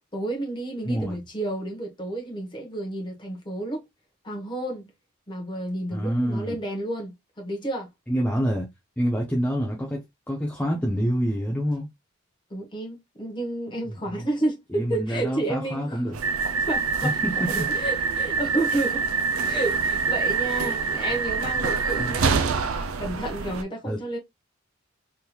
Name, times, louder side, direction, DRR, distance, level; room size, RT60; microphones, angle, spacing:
voice 1, 0.0-3.8 4.2-4.9 5.3-7.9 12.5-16.0 16.7-17.1 17.5-19.1 19.4-22.5 23.0-24.2, right 1 dB, 25° left, 1.1 m, -31 dB
voice 2, 0.9-1.2 5.9-6.5 8.1-8.7 9.0-10.0 10.3-11.9 14.7-16.2 17.0-17.7 20.9-21.0 22.0-22.2 23.8-24.0, equal, 5° left, 0.7 m, -26 dB
sound 1, 16.1-23.6, right 5 dB, 80° right, 0.5 m, -25 dB
3.6 x 3.0 x 2.3 m
head